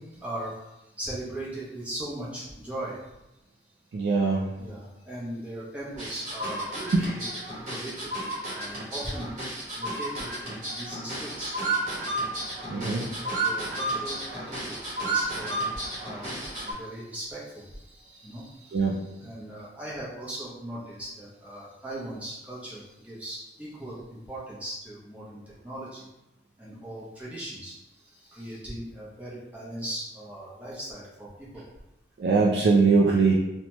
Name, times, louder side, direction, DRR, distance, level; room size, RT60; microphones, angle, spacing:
voice 1, 0.1-0.6 1.0-3.0 4.6-8.1 8.5-9.3 9.8-11.5 12.7-15.7 16.0-26.1 26.6-27.7 28.0-31.6, right 1 dB, 10° right, -7 dB, 0.7 m, -39 dB
voice 2, 3.9-4.5 6.9-7.1 12.7-13.0 18.7-19.0 32.2-33.3, right 4 dB, 65° right, -2 dB, 0.3 m, -21 dB
sound 1, 6.0-16.7, right 2 dB, 40° right, 1.0 m, -32 dB
2.8 x 2.2 x 2.9 m, 0.95 s
head